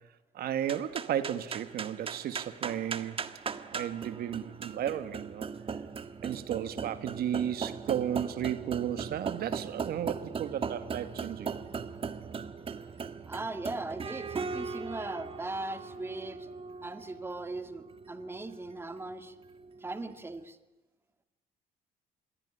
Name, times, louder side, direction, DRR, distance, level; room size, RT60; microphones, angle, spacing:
voice 1, 0.3-3.2 3.7-5.5 6.2-11.5, right 10 dB, 65° right, 1.6 m, -34 dB
sound 1, 0.6-20.1, right 5 dB, 35° right, 1.6 m, -39 dB
voice 2, 13.3-16.5 16.8-19.3 19.8-20.6, right 2 dB, 15° right, 2.0 m, -39 dB
27.5 x 22.0 x 10.0 m
cardioid pair, 110°, 17 cm